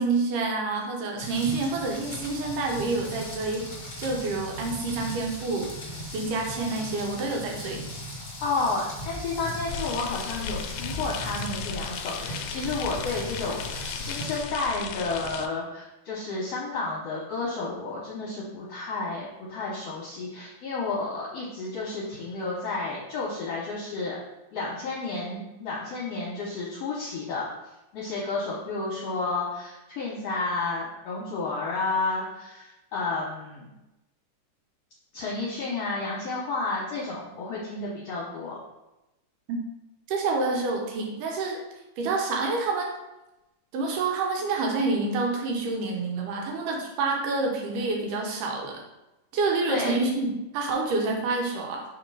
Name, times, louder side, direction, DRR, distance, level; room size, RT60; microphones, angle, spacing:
voice 1, 0.0-3.7 4.0-5.7 6.1-7.8 39.5-39.6 40.1-41.6 42.0-42.9 43.7-48.8 49.3-51.8, right 3 dB, 80° right, 1 dB, 2.6 m, -28 dB
Rain, 1.2-14.4, left 1 dB, 25° left, 1.8 m, -38 dB
voice 2, 8.4-24.2 24.5-27.4 27.9-33.7 35.1-38.6 49.7-50.0, left 3 dB, 65° left, -5 dB, 1.8 m, -31 dB
sound 1, 9.7-15.5, left 7 dB, 80° left, 1.8 m, -36 dB
6.6 x 3.6 x 4.7 m, 0.96 s
omnidirectional pair, 3.7 m